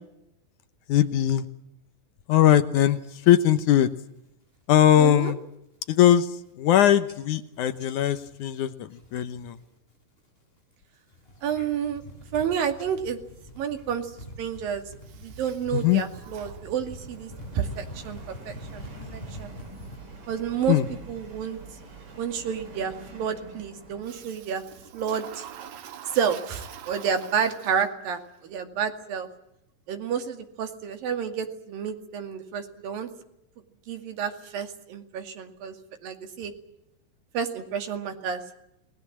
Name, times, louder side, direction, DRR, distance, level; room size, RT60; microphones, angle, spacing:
voice 1, 0.9-1.5 2.3-3.9 4.7-5.4 5.9-6.3 6.6-9.6 15.7-16.0 20.7-20.9, left 11 dB, 70° left, 12 dB, 2.3 m, -20 dB
sound 1, 2.9-3.8 4.2-4.5 4.9-5.3 5.7-5.8 6.1-6.7 7.1-9.6 9.9-10.4 10.9-20.0, equal, 15° left, 8.0 m, -46 dB
voice 2, 5.0-5.3 11.4-12.0 12.3-13.2 13.6-14.1 14.4-14.9 15.2-18.8 19.1-19.5 20.3-20.8 21.1-21.6 22.2-24.6 24.9-25.5 26.1-29.3 29.9-33.1 33.9-35.7 36.0-36.5 37.3-38.4, right 7 dB, 90° right, 7 dB, 4.0 m, -30 dB
Subway metro underground, 14.6-25.7, right 3 dB, 40° right, 4.4 m, -46 dB
Toilet flush, 15.0-17.3 24.0-28.2, right 9 dB, 65° right, 2.5 m, -45 dB
29.0 x 20.0 x 7.4 m, 0.81 s
omnidirectional pair, 3.9 m